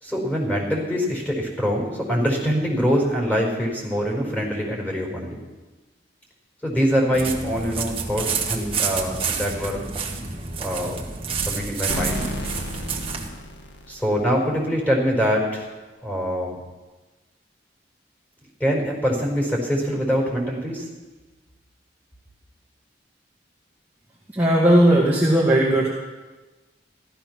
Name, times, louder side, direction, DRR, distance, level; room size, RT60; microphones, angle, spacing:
voice 1, 0.0-5.4 6.6-9.9 10.6-11.0 11.4-12.3 13.9-15.7 16.0-16.6 18.6-20.9, equal, 10° left, 0 dB, 4.6 m, -24 dB
sound 1, 7.1-13.3, right 5 dB, 30° right, 1.7 m, -29 dB
sound 2, 11.9-14.6, left 1 dB, 80° left, 1.5 m, -33 dB
voice 2, 24.3-25.9, right 1 dB, 10° right, -6 dB, 1.9 m, -17 dB
15.0 x 13.0 x 6.0 m, 1.2 s
head